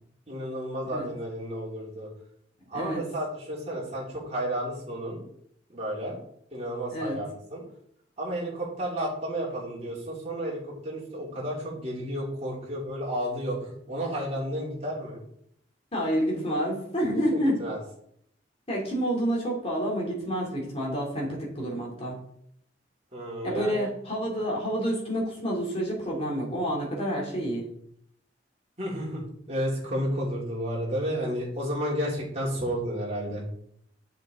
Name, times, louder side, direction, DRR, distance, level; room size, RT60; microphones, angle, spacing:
voice 1, 0.3-2.1 2.7-5.2 5.7-6.2 6.5-7.6 8.2-15.2 17.3-17.8 23.1-23.9 28.8-29.2 29.5-33.4, equal, 35° right, -5 dB, 3.1 m, -32 dB
voice 2, 15.9-17.6 18.7-22.2 23.4-27.7, equal, 35° left, -3 dB, 3.1 m, -28 dB
7.5 x 7.2 x 3.8 m, 0.69 s
head